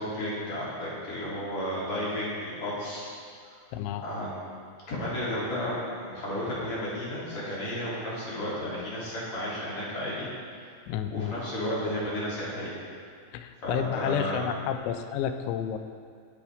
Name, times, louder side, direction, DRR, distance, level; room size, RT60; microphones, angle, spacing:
voice 1, 0.0-3.1 4.0-4.5 4.9-10.3 11.1-12.7 13.6-14.5, equal, 40° left, -8 dB, 4.0 m, -33 dB
voice 2, 3.7-4.0 10.9-11.4 13.3-15.8, left 9 dB, 90° left, 8 dB, 3.0 m, -30 dB
20.0 x 8.5 x 3.6 m, 2.2 s
omnidirectional pair, 5.1 m